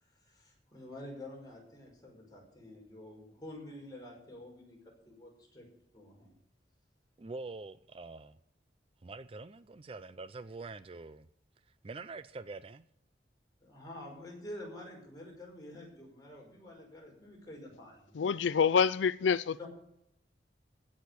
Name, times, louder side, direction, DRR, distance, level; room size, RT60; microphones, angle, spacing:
voice 1, 0.2-5.7 5.9-6.3 13.6-18.3 19.6-19.7, left 1 dB, 20° left, 5.4 m, -48 dB
voice 2, 7.2-8.4 9.0-11.3 11.8-12.8, right 3 dB, 30° right, 0.4 m, -45 dB
voice 3, 18.1-19.7, left 6 dB, 90° left, 0.4 m, -27 dB
16.0 x 6.5 x 8.2 m
head